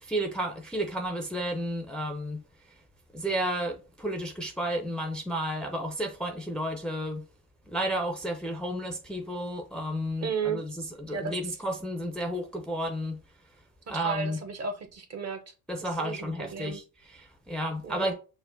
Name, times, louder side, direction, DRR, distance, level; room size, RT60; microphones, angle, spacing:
voice 1, 0.0-2.8 3.1-7.3 7.7-13.2 13.9-14.4 15.7-18.1, right 1 dB, ahead, 0.6 m, -32 dB
voice 2, 10.2-10.6 11.1-11.3 13.9-15.5 16.0-16.8 17.8-18.1, right 5 dB, 35° right, 0.8 m, -34 dB
5.8 x 2.1 x 2.7 m
hypercardioid pair, 60°, 47 cm